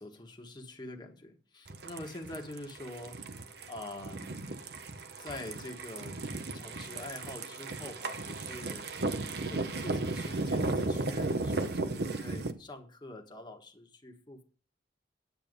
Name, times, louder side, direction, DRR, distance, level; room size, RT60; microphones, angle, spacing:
voice 1, 0.0-3.2 3.7-4.4 5.2-6.2 6.5-8.8 9.4-14.4, left 1 dB, 25° left, 1.5 m, -45 dB
sound 1, 1.7-12.5, right 2 dB, 60° right, 1.0 m, -35 dB
9.6 x 8.7 x 5.3 m
head